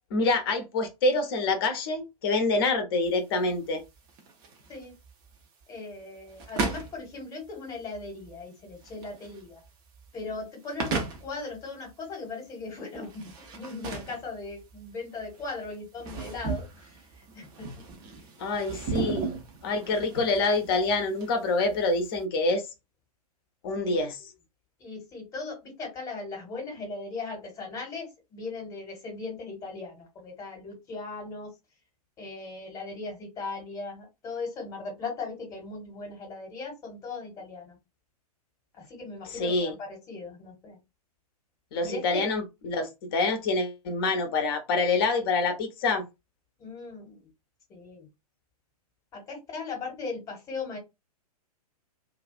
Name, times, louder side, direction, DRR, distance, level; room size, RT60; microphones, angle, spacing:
voice 1, 0.1-3.8 18.4-19.3 19.6-22.7 23.6-24.2 39.3-39.7 41.7-46.0, left 3 dB, 35° left, 0.7 m, -26 dB
sound 1, 3.0-22.2, right 4 dB, 20° right, 0.5 m, -37 dB
voice 2, 5.7-9.6 10.1-18.2 18.7-18.8 23.8-24.0 24.8-31.5 32.2-37.8 38.7-40.8 41.8-42.3 46.6-47.3 47.7-48.1 49.1-50.8, left 3 dB, 15° left, 1.0 m, -38 dB
2.3 x 2.3 x 2.3 m
figure-of-eight pair, 115°, 20 cm